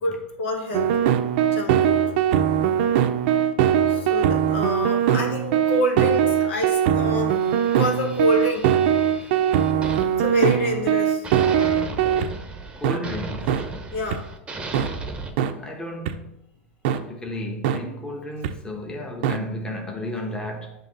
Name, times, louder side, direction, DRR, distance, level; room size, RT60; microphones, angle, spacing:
voice 1, 0.0-0.9 1.5-2.0 3.9-8.7 10.2-11.2 13.9-14.2, left 1 dB, 75° left, 1.7 m, -27 dB
sound 1, 0.7-12.3 12.8-13.0 13.5-13.6 14.1-14.2 14.7-14.9 15.4-15.5 16.1-16.2 16.8-17.0 17.6-17.8 18.4-18.5 19.2-19.4, right 9 dB, 60° right, 0.6 m, -21 dB
sound 2, 7.3-10.9 11.2-15.3, right 2 dB, 15° right, 0.9 m, -36 dB
voice 2, 12.8-13.7 15.6-16.4 17.0-20.7, left 1 dB, 10° left, 1.2 m, -33 dB
7.4 x 3.0 x 5.4 m
hypercardioid pair, 115°, 7 cm